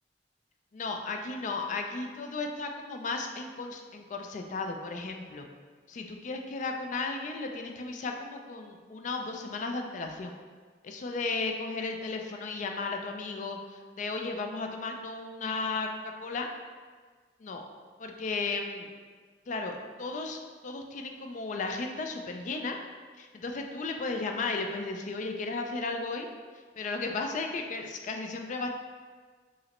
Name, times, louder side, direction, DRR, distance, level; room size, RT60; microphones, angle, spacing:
voice 1, 0.7-5.5 5.9-10.3 10.8-16.5 17.4-17.6 18.0-18.9 19.5-22.8 23.2-26.3 26.8-28.7, left 3 dB, 45° left, 4 dB, 0.3 m, -35 dB
4.8 x 2.0 x 3.0 m, 1.5 s
head